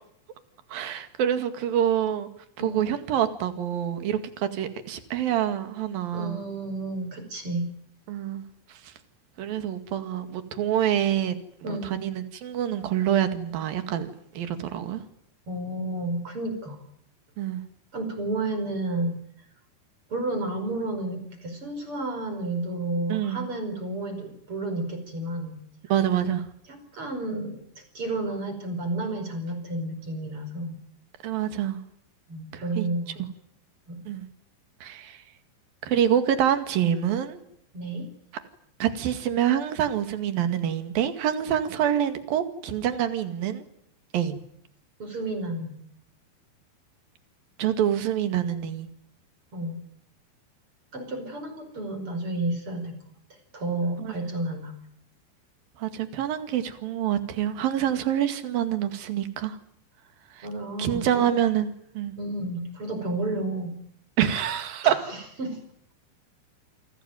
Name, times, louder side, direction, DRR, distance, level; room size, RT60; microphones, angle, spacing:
voice 1, 0.7-2.3 2.6-6.4 8.1-8.4 9.4-11.4 11.7-15.0 17.4-17.6 23.1-23.5 25.9-26.4 31.2-31.8 32.5-32.9 33.2-33.3 34.1-34.3 34.8-35.2 35.8-37.4 38.8-43.6 44.1-44.4 47.6-48.9 54.0-54.1 55.8-59.6 60.4-60.5 60.8-62.2 64.2-64.9, right 10 dB, 55° right, 9 dB, 3.5 m, -26 dB
voice 2, 6.1-7.7 11.6-12.0 15.5-16.8 17.9-19.2 20.1-25.6 26.7-27.6 27.9-30.8 32.3-33.2 33.9-34.0 37.7-38.1 45.0-45.7 49.5-49.8 50.9-53.0 53.3-54.7 60.4-61.2 62.2-63.7 64.8-65.6, right 2 dB, 30° right, 7 dB, 5.6 m, -31 dB
29.0 x 20.5 x 9.3 m, 0.70 s
omnidirectional pair, 5.4 m